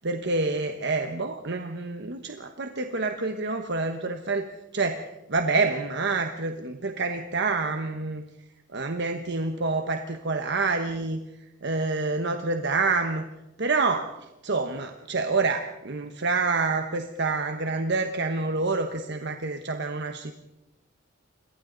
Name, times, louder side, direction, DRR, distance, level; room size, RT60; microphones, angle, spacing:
voice 1, 0.0-8.2 8.7-11.3 11.6-13.2 13.6-14.1 14.4-20.3, right 3 dB, 60° right, 6 dB, 1.2 m, -27 dB
29.0 x 22.5 x 4.0 m, 0.99 s
head